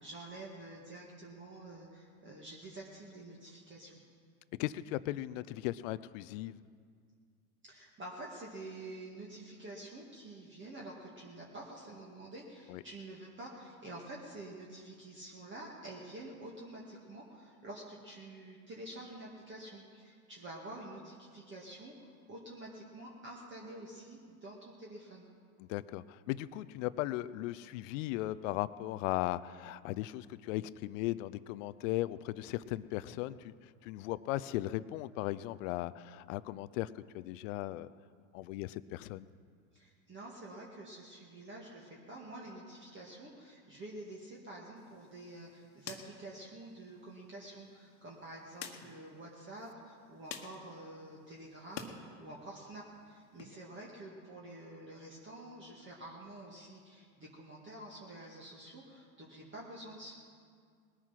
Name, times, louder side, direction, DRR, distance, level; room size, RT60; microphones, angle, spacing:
voice 1, 0.0-3.9 7.6-25.3 39.7-60.1, right 1 dB, 25° right, -3 dB, 2.1 m, -48 dB
voice 2, 4.6-6.6 12.7-12.8 25.6-37.9 38.3-39.3, left 16 dB, 60° left, 17 dB, 0.6 m, -37 dB
sound 1, 44.8-52.0 52.3-53.4, left 7 dB, 40° left, 1.5 m, -51 dB
20.0 x 9.6 x 5.9 m, 2.1 s
hypercardioid pair, 100°, 43 cm